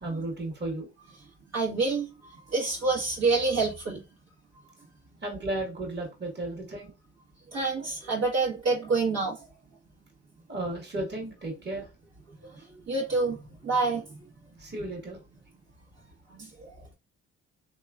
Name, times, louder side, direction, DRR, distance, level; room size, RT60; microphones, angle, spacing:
voice 1, 0.0-0.9 5.2-6.9 8.0-8.1 10.5-11.9 14.6-15.2, right 2 dB, 35° right, 1.6 m, -34 dB
voice 2, 1.5-2.1 2.5-4.0 7.5-9.4 12.9-14.2 16.3-16.7, right 3 dB, 55° right, 1.4 m, -27 dB
3.5 x 2.9 x 2.4 m
supercardioid pair, 60°, 31 cm